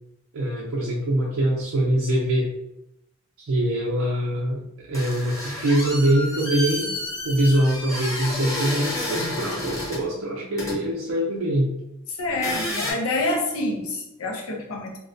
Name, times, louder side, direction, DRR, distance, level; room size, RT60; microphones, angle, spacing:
voice 1, 0.3-2.5 3.4-6.9 7.2-11.7, right 1 dB, 80° right, -4 dB, 0.4 m, -23 dB
sound 1, 4.9-10.0 10.6-10.8 12.3-12.9, left 1 dB, 15° left, 0.7 m, -30 dB
voice 2, 12.1-15.0, left 2 dB, 85° left, 0 dB, 0.6 m, -27 dB
2.3 x 2.1 x 2.5 m, 0.84 s
head